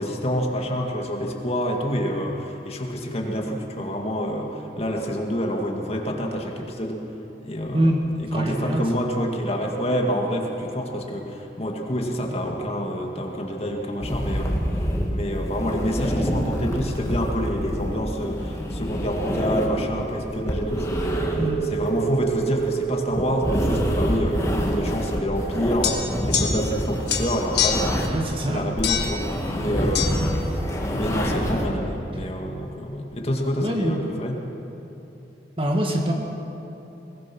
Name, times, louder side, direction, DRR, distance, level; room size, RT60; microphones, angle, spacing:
voice 1, 0.0-7.0 7.4-14.8 15.1-21.2 21.6-28.1 28.5-30.4 30.9-34.4, equal, 35° left, 1 dB, 2.0 m, -27 dB
voice 2, 8.3-8.8 21.4-21.6 28.1-28.7 33.6-34.0 35.6-36.1, right 1 dB, 30° right, 1 dB, 1.9 m, -23 dB
sound 1, 14.0-28.3 28.6-31.7, equal, 15° left, 2.2 m, -27 dB
sound 2, 20.2-27.6, right 7 dB, 50° right, 5.8 m, -30 dB
sound 3, 25.8-26.8 27.1-28.0 28.8-29.2 29.9-30.1, left 8 dB, 75° left, 1.8 m, -25 dB
22.0 x 19.5 x 6.1 m, 3.0 s
head